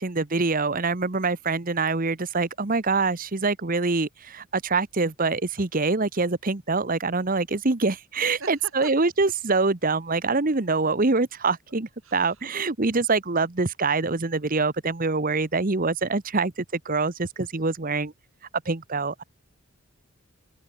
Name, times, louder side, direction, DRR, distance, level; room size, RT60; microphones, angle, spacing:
voice 1, 0.0-18.1 18.7-19.2, right 3 dB, 40° right, 1.1 m, -25 dB
voice 2, 8.4-9.0 12.0-12.5, right 3 dB, 70° right, 7.1 m, -41 dB
open air
head